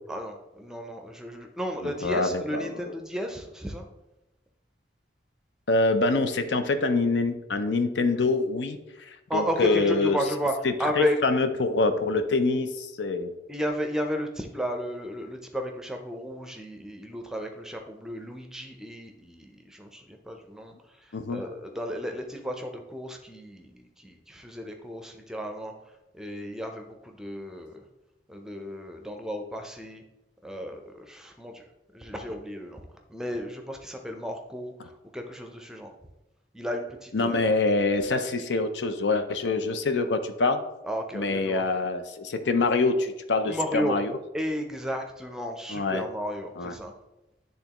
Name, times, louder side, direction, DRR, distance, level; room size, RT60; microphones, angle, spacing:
voice 1, 0.1-3.9 9.3-11.2 13.5-27.8 28.3-30.0 30.4-31.7 31.9-32.8 33.1-35.9 36.5-37.5 40.8-41.7 43.5-44.0 44.3-47.0, equal, 5° right, 4 dB, 0.5 m, -33 dB
voice 2, 2.0-2.7 5.7-10.2 11.0-13.3 21.1-21.4 37.1-40.6 41.1-44.1 45.7-46.0 46.6-46.7, left 3 dB, 80° left, 9 dB, 0.6 m, -25 dB
10.0 x 3.5 x 2.9 m, 0.96 s
head